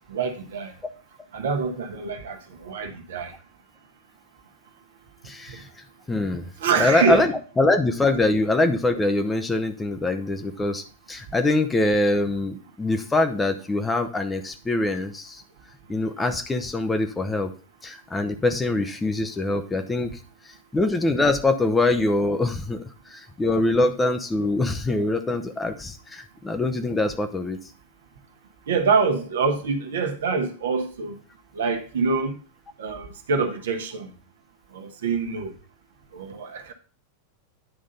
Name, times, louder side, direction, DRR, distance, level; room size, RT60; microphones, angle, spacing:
voice 1, 0.1-0.7 1.3-3.3 5.5-5.6 6.6-7.3 28.7-31.2 31.5-32.3 32.8-34.1 34.7-35.5 36.1-36.7, right 5 dB, 60° right, 1.2 m, -25 dB
voice 2, 5.2-5.7 6.1-6.5 6.8-15.4 15.9-17.5 17.8-20.2 20.7-22.8 23.1-27.6, left 2 dB, 10° left, 0.8 m, -23 dB
10.0 x 3.8 x 5.2 m
figure-of-eight pair, 90°, 0 cm